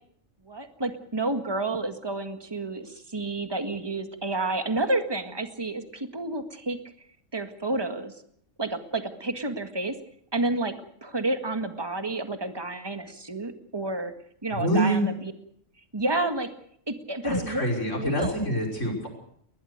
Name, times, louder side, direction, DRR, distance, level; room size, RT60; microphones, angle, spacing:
voice 1, 0.5-6.8 7.3-8.1 8.6-10.0 10.3-10.8 11.0-14.1 14.4-15.3 15.9-16.5 16.9-17.6 18.0-18.5, right 2 dB, 20° right, 7 dB, 1.8 m, -30 dB
voice 2, 14.6-15.1 17.2-19.1, right 1 dB, 70° left, 1 dB, 6.0 m, -26 dB
21.5 x 20.5 x 6.6 m, 0.67 s
omnidirectional pair, 1.3 m